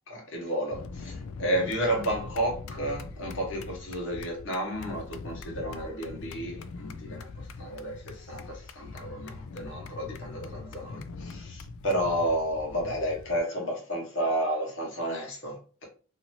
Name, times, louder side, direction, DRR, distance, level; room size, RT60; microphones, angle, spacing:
voice 1, 0.1-15.8, right 1 dB, 60° left, 1.3 m, -32 dB
sound 1, 0.7-13.4, left 4 dB, 75° left, 0.3 m, -42 dB
2.8 x 2.7 x 2.8 m
head